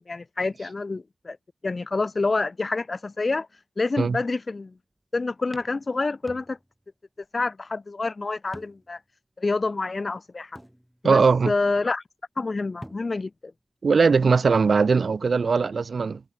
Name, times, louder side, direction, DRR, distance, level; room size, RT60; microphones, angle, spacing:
voice 1, 0.0-1.4 1.6-3.5 3.8-4.7 5.1-6.6 7.3-9.0 9.4-10.5 11.0-12.0 12.4-13.5, left 3 dB, 50° left, 0.4 m, -27 dB
sound 1, 4.7-5.0 5.5-6.9 7.2-7.3 8.5-9.1 9.5-9.6 10.5-11.3 12.5-12.6 12.8-13.4, equal, 5° right, 3.9 m, -47 dB
voice 2, 11.0-11.5 13.8-16.2, right 5 dB, 75° right, 0.5 m, -20 dB
cardioid pair, 45°, 0 cm